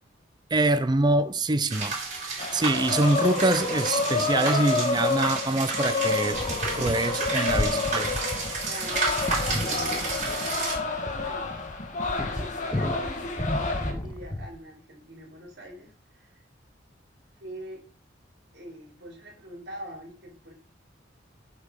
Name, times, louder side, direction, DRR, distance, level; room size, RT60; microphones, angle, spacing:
voice 1, 0.5-2.0 2.5-6.4 6.7-8.2 9.5-9.6, right 2 dB, 25° right, 0.6 m, -25 dB
sound 1, 1.7-10.8, right 3 dB, 45° right, 3.9 m, -31 dB
sound 2, 2.4-13.9, left 3 dB, 40° left, 1.4 m, -29 dB
sound 3, 6.3-14.6, left 1 dB, 20° left, 0.8 m, -34 dB
voice 2, 8.6-10.4 10.8-11.5 12.0-16.4 17.4-17.8 18.5-20.5, right 1 dB, 65° right, 3.6 m, -44 dB
7.8 x 5.3 x 5.2 m
head